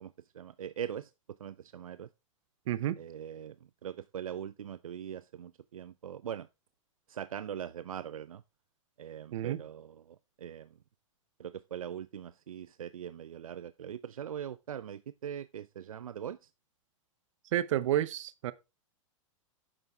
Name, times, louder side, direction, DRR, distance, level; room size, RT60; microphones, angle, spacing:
voice 1, 0.0-2.1 3.0-6.5 7.1-8.4 9.0-10.8 11.4-16.5, right 9 dB, 90° right, 0.4 m, -41 dB
voice 2, 2.7-3.0 9.3-9.6 17.5-18.5, right 12 dB, 65° right, 0.8 m, -30 dB
9.8 x 6.7 x 3.4 m
hypercardioid pair, 105°, 17 cm